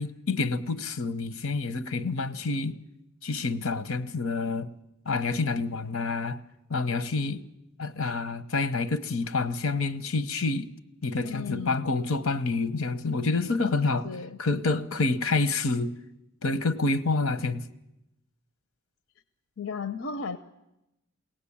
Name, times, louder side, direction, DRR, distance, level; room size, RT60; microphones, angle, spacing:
voice 1, 0.0-2.8 3.2-4.7 5.0-6.4 6.7-7.4 7.8-10.7 11.0-14.1 14.4-16.0 16.4-17.6, left 3 dB, 90° left, 1.0 m, -28 dB
voice 2, 11.2-11.9 14.0-14.4 19.6-20.4, left 5 dB, 70° left, 0.7 m, -35 dB
22.0 x 18.0 x 8.6 m
head